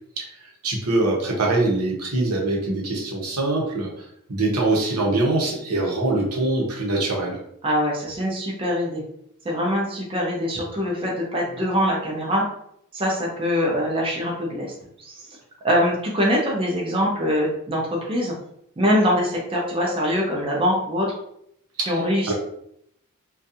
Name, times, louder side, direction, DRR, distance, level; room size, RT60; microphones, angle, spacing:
voice 1, 0.6-3.9 4.3-7.4 21.8-22.0 22.3-22.4, right 2 dB, 75° right, -1 dB, 0.8 m, -23 dB
voice 2, 7.6-9.0 9.4-12.4 12.9-14.7 15.0-15.2 15.6-18.3 18.8-21.1 21.8-22.3, equal, 25° right, -3 dB, 0.5 m, -23 dB
2.5 x 2.2 x 2.7 m, 0.72 s
head